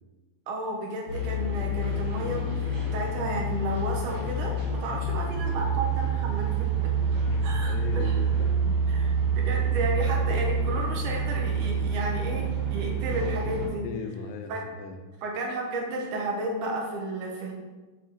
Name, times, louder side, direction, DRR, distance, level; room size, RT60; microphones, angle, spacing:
voice 1, 0.5-6.7 7.4-8.2 8.9-12.5 12.7-13.8 14.5-14.6 15.2-17.5, right 1 dB, 70° right, -1 dB, 2.2 m, -32 dB
sound 1, 1.1-13.7, right 3 dB, 55° right, 3.1 m, -27 dB
voice 2, 7.3-8.9 13.8-15.0, left 5 dB, 80° left, 6 dB, 2.3 m, -38 dB
7.3 x 5.1 x 3.9 m, 1.2 s
omnidirectional pair, 4.1 m